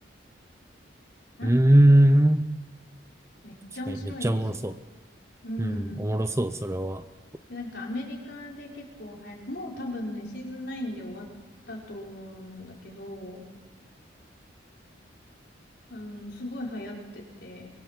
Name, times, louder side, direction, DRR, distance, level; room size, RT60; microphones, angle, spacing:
voice 1, 1.4-2.5 3.9-4.0 4.2-4.7 5.6-7.0, right 1 dB, 15° right, 10 dB, 0.6 m, -20 dB
voice 2, 3.4-4.6 5.4-6.1 7.5-11.2 11.7-13.4 15.9-17.7, left 1 dB, 60° left, -2 dB, 5.3 m, -37 dB
24.0 x 22.5 x 7.5 m, 1.3 s
head